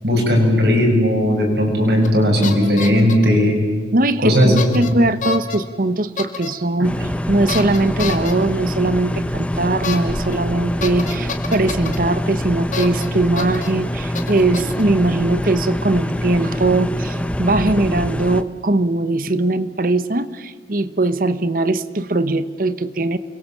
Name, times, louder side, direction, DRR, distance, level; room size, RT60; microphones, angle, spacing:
voice 1, 0.0-3.6 4.2-4.9, equal, 70° right, 1 dB, 7.1 m, -16 dB
sound 1, 2.0-2.2 2.4-3.3 4.6-4.9 5.2-5.6 6.2-6.5 7.5-8.3 9.8-10.0 10.3-10.4 10.8-12.0 12.7-13.1 13.4-13.7 14.1-14.8, left 5 dB, 45° left, 2.1 m, -28 dB
voice 2, 3.9-6.9 7.3-23.2, right 2 dB, 50° right, 14 dB, 1.0 m, -20 dB
sound 2, 6.8-18.4, equal, 5° left, 0.8 m, -24 dB
29.5 x 22.5 x 7.4 m, 1.5 s
head